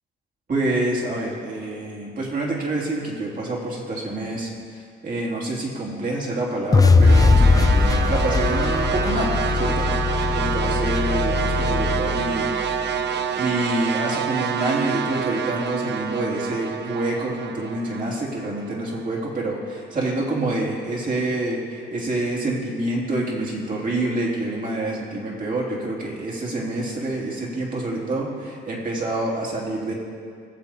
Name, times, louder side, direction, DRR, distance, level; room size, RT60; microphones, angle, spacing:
voice 1, 0.5-4.5 5.0-9.9 10.3-12.5 13.4-29.9, right 2 dB, 45° right, -4 dB, 3.4 m, -27 dB
sound 1, 6.7-12.9, left 4 dB, 20° left, 0.6 m, -20 dB
sound 2, 7.0-19.3, right 7 dB, 60° right, 0.7 m, -27 dB
19.0 x 7.3 x 4.4 m, 2.1 s
cardioid pair, 90°, 20 cm